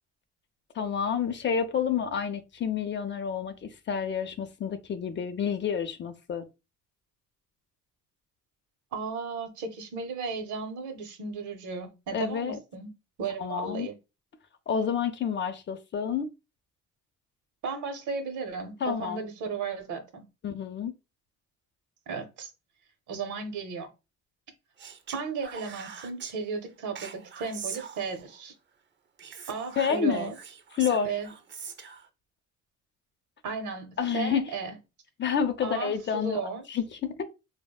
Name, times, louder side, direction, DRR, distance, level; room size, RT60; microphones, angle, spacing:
voice 1, 0.7-6.5 12.1-12.6 13.4-13.9 14.7-16.3 18.8-19.2 20.4-20.9 29.8-30.3 30.7-31.2 34.0-34.5 35.2-36.4 36.7-37.2, left 7 dB, 40° left, 0.5 m, -29 dB
voice 2, 8.9-12.9 13.2-13.9 17.6-20.3 22.1-22.5 23.1-23.9 25.1-28.5 29.5-30.3 31.0-31.3 33.4-34.8 35.6-36.6, right 5 dB, 80° right, 0.7 m, -35 dB
Speech, 24.8-26.4 27.0-28.4 29.2-32.1, right 6 dB, 40° right, 0.4 m, -42 dB
3.4 x 2.0 x 2.2 m
cardioid pair, 90°, 30 cm